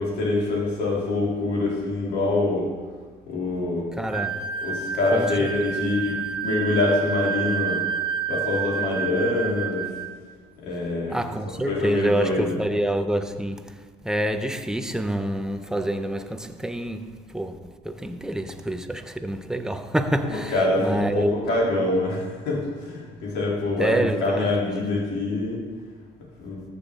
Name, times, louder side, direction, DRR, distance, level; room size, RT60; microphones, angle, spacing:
voice 1, 0.0-2.7 3.3-4.0 4.6-7.8 8.3-9.9 10.6-11.2 11.7-12.5 20.2-25.6 26.4-26.6, left 2 dB, 85° left, 3.2 m, -25 dB
voice 2, 4.0-4.5 5.1-6.0 11.1-21.3 23.8-24.5, right 1 dB, 5° right, 0.6 m, -27 dB
sound 1, 4.1-10.2, right 7 dB, 35° right, 1.3 m, -29 dB
14.0 x 6.8 x 3.7 m
cardioid pair, 110°, 17 cm